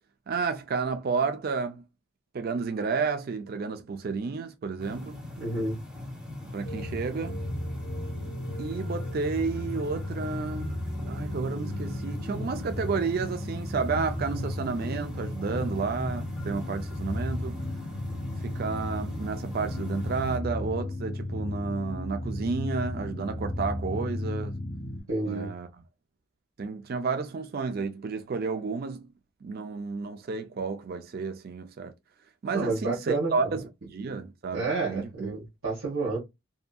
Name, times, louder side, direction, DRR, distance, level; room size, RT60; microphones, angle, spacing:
voice 1, 0.3-1.8 2.3-5.2 6.5-7.4 8.6-10.8 11.0-17.6 18.4-24.6 25.2-25.7 26.6-29.1 29.4-31.9 32.4-35.4, right 4 dB, 45° right, 0.3 m, -31 dB
sound 1, 4.8-20.4, left 2 dB, 5° right, 0.7 m, -41 dB
voice 2, 5.4-5.8 25.1-25.5 32.5-33.5 34.5-36.2, right 3 dB, 70° right, 1.1 m, -30 dB
sound 2, 6.6-25.0, left 1 dB, 35° left, 0.7 m, -34 dB
2.7 x 2.5 x 2.2 m
head